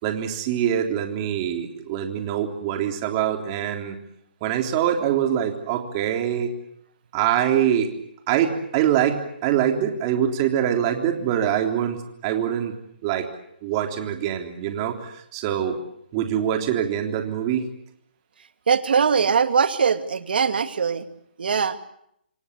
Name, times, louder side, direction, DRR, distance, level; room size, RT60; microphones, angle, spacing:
voice 1, 0.0-4.0 4.4-6.5 7.1-7.9 8.3-12.7 13.0-13.3 13.6-15.8 16.1-17.7, right 10 dB, 25° right, 4 dB, 3.5 m, -24 dB
voice 2, 18.7-21.0 21.4-21.8, right 6 dB, 65° right, 9 dB, 2.4 m, -21 dB
28.0 x 23.5 x 8.3 m, 0.77 s
hypercardioid pair, 160°, 6 cm